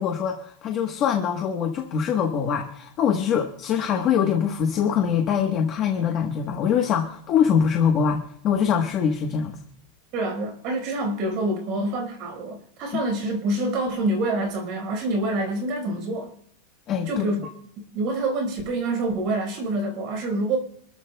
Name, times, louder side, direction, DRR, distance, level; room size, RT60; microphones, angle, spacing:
voice 1, 0.0-9.6 12.9-13.0 16.9-17.3, left 7 dB, 30° left, 2 dB, 1.2 m, -23 dB
voice 2, 10.1-16.3 17.1-17.4 17.9-20.6, right 2 dB, 35° right, 4 dB, 4.5 m, -26 dB
27.0 x 13.5 x 2.3 m, 0.69 s
supercardioid pair, 175°, 0 cm